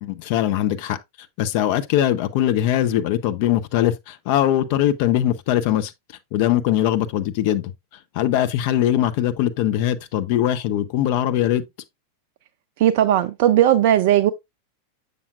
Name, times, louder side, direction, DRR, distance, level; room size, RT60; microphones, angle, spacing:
voice 1, 0.0-1.0 1.4-5.9 6.3-7.7 8.1-11.6, left 12 dB, 45° left, 0.6 m, -21 dB
voice 2, 12.8-14.3, right 11 dB, 50° right, 0.4 m, -17 dB
7.1 x 6.6 x 2.4 m
figure-of-eight pair, 90°, 0 cm